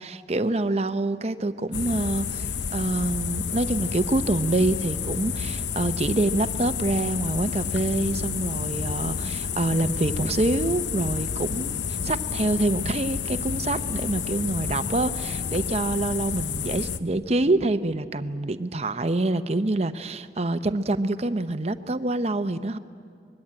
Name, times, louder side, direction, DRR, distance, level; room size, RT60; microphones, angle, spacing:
voice 1, 0.0-22.8, right 2 dB, 35° right, 12 dB, 0.7 m, -26 dB
sound 1, 1.7-17.0, left 6 dB, 90° left, 0.8 m, -30 dB
23.5 x 21.0 x 8.7 m, 2.2 s
head